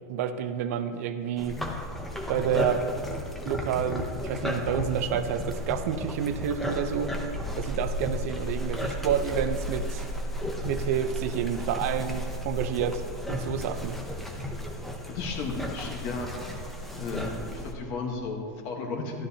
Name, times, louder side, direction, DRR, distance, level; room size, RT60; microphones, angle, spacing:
voice 1, 0.1-1.6 2.3-2.9 3.4-7.2 7.5-10.1 10.7-13.0 13.3-14.0, right 8 dB, 50° right, 10 dB, 0.6 m, -29 dB
sound 1, 1.4-17.7, left 1 dB, ahead, 0.7 m, -34 dB
voice 2, 15.1-16.3 16.9-19.3, left 4 dB, 35° left, 2 dB, 1.3 m, -34 dB
13.0 x 12.0 x 2.9 m, 2.1 s
supercardioid pair, 170°, 10 cm